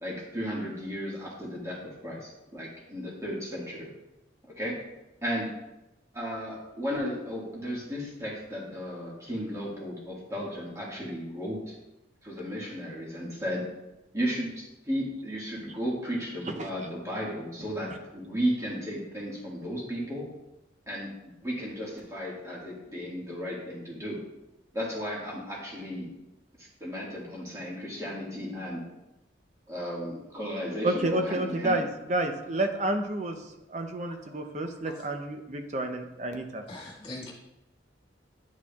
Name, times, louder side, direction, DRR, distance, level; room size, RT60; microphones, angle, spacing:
voice 1, 0.0-3.9 4.6-4.8 5.2-5.5 6.1-11.7 12.2-13.6 14.1-20.3 20.9-24.2 24.7-26.1 26.6-28.8 29.7-31.8, equal, 15° right, -5 dB, 1.7 m, -34 dB
voice 2, 30.8-33.4 33.7-36.6, right 1 dB, 40° right, 6 dB, 0.6 m, -30 dB
voice 3, 36.7-37.3, left 2 dB, 30° left, -4 dB, 1.8 m, -41 dB
10.0 x 4.8 x 2.3 m, 0.94 s
head